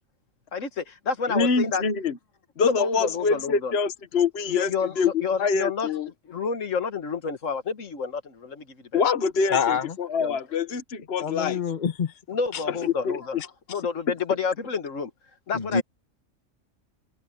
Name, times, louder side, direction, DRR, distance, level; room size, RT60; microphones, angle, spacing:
voice 1, 0.5-1.8 2.6-3.8 4.5-5.9 6.3-9.0 10.2-10.4 12.3-13.4 13.7-15.1 15.5-15.8, left 5 dB, 80° left, 1.9 m, -29 dB
voice 2, 1.3-2.1 2.6-4.7 5.0-5.1 5.4-6.1 8.9-11.6 12.7-13.2, left 5 dB, 55° left, 1.4 m, -25 dB
voice 3, 9.5-9.8 11.2-12.1 15.5-15.8, left 6 dB, 40° left, 1.2 m, -25 dB
omnidirectional pair, 1.3 m